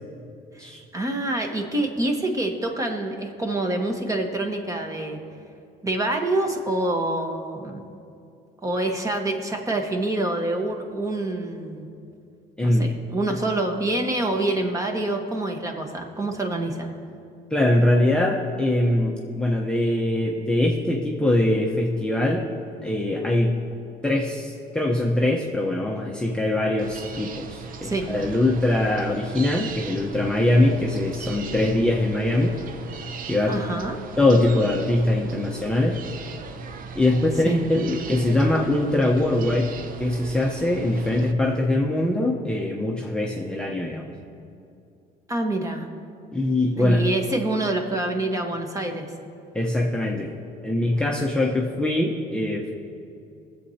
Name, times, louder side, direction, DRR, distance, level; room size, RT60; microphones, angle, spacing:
voice 1, 0.5-5.2 5.8-7.8 8.6-11.9 12.6-16.9 27.8-28.1 33.4-34.0 37.4-37.6 45.3-45.9 46.8-49.1, right 2 dB, 20° right, 3 dB, 1.3 m, -26 dB
voice 2, 12.6-12.9 13.3-13.4 17.5-22.5 22.8-23.6 24.0-32.5 33.3-33.6 34.2-36.0 36.9-39.7 40.0-44.1 46.3-47.0 49.5-50.3 50.6-52.7, left 1 dB, 5° left, -2 dB, 0.9 m, -22 dB
sound 1, 26.8-41.3, right 5 dB, 55° right, 0.7 m, -38 dB
22.5 x 7.7 x 2.8 m, 2.6 s
cardioid pair, 110°, 17 cm